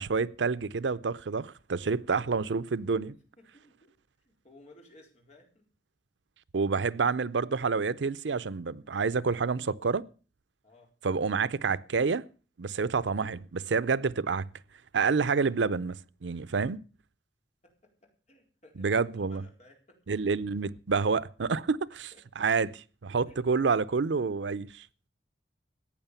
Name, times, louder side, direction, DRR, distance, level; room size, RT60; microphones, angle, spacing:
voice 1, 0.0-3.1 6.5-10.0 11.0-12.2 12.6-14.4 14.9-16.0 16.2-16.8 18.8-19.4 20.1-22.1 22.4-24.8, right 5 dB, 90° right, 0.6 m, -28 dB
voice 2, 3.0-3.9 4.2-5.6 10.6-10.9 17.6-20.0 21.9-22.2 23.3-23.4, left 1 dB, 40° left, 4.1 m, -58 dB
15.0 x 8.9 x 6.9 m
head